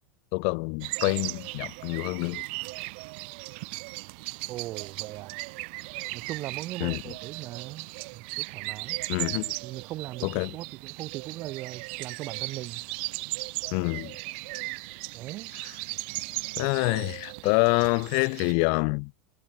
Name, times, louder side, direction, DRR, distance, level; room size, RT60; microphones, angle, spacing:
voice 1, 0.3-2.4 6.8-7.1 9.1-9.6 10.2-10.6 13.7-14.2 15.6-15.7 16.6-19.1, left 40 dB or more, 60° left, 1.9 m, -27 dB
sound 1, 0.8-18.5, right 29 dB, 60° right, 2.8 m, -37 dB
voice 2, 4.5-5.4 6.1-9.0 9.6-12.8 15.1-15.5, right 16 dB, 45° right, 1.6 m, -39 dB
hypercardioid pair, 105°, 6 cm